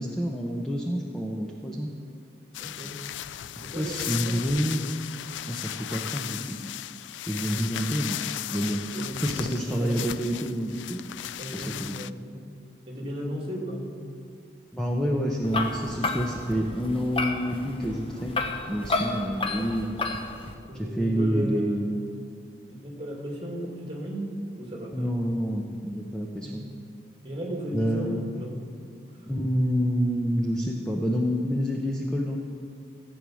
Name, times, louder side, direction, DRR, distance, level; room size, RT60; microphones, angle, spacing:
voice 1, 0.0-1.9 3.8-4.9 5.5-6.6 7.3-8.2 8.5-9.0 9.2-11.1 11.5-12.0 14.7-20.0 20.7-22.0 24.9-26.6 27.7-28.2 29.3-32.4, equal, 5° left, -1 dB, 0.8 m, -28 dB
sound 1, 2.5-12.1, left 12 dB, 85° left, 0.3 m, -36 dB
voice 2, 2.5-3.0 3.6-4.5 7.3-7.9 8.9-10.0 11.4-12.5 12.9-13.9 20.6-21.9 22.7-25.1 26.4-26.6 27.2-28.6, equal, 30° right, -1 dB, 2.4 m, -35 dB
sound 2, 15.4-20.5, left 3 dB, 30° left, 0.9 m, -31 dB
14.5 x 8.7 x 6.3 m, 2.2 s
head